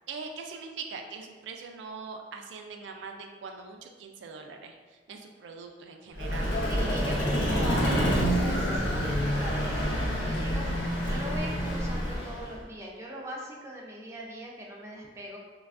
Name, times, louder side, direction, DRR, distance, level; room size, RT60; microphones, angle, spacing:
voice 1, 0.1-6.6, right 4 dB, 90° right, 4 dB, 0.3 m, -42 dB
Vehicle, 6.1-12.6, equal, 85° left, 0.8 m, -27 dB
voice 2, 6.7-10.7 11.1-15.4, equal, 15° right, -3 dB, 0.4 m, -41 dB
3.3 x 2.2 x 2.4 m, 1.4 s
head